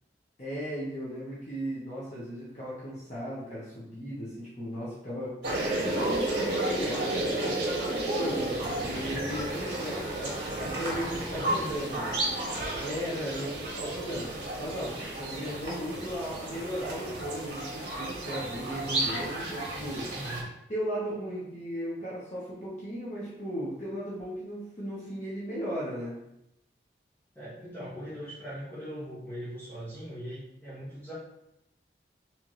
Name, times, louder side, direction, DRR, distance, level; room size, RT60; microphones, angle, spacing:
voice 1, 0.4-5.3 5.7-12.2 12.8-20.1 20.7-26.2, equal, 40° left, -8 dB, 1.1 m, -36 dB
sound 1, 5.4-20.4, right 1 dB, 85° right, 1.5 m, -32 dB
voice 2, 10.9-11.8 20.1-20.6 27.3-31.1, equal, 10° left, -11 dB, 1.2 m, -40 dB
4.3 x 3.5 x 3.1 m, 0.84 s
head